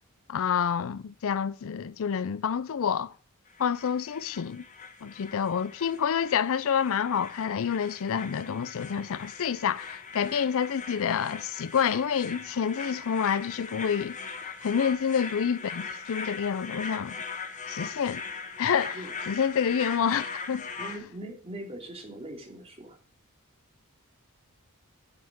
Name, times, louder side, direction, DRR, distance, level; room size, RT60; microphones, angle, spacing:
voice 1, 0.3-3.1 3.6-4.6 5.0-14.2 14.4-17.2 17.7-18.2 18.6-20.7, left 7 dB, 65° left, 0.5 m, -28 dB
sound 1, 3.5-21.0, left 5 dB, 35° left, 1.4 m, -40 dB
voice 2, 20.8-23.0, right 1 dB, 25° right, 2.9 m, -41 dB
9.6 x 5.8 x 7.7 m
head